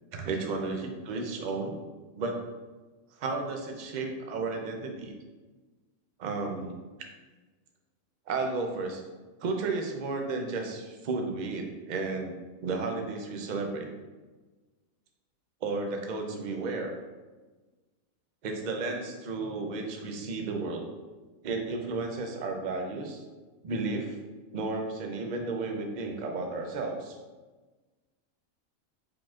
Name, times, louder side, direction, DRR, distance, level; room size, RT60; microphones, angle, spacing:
voice 1, 0.1-0.8 1.1-1.8 2.1-2.4 3.2-5.1 6.2-6.7 8.3-9.0 9.4-12.3 12.6-13.9 15.6-16.9 18.4-20.9 21.4-23.2 23.6-24.2 24.5-27.2, right 3 dB, 60° right, 3 dB, 0.4 m, -33 dB
4.8 x 3.8 x 2.4 m, 1.3 s
omnidirectional pair, 1.5 m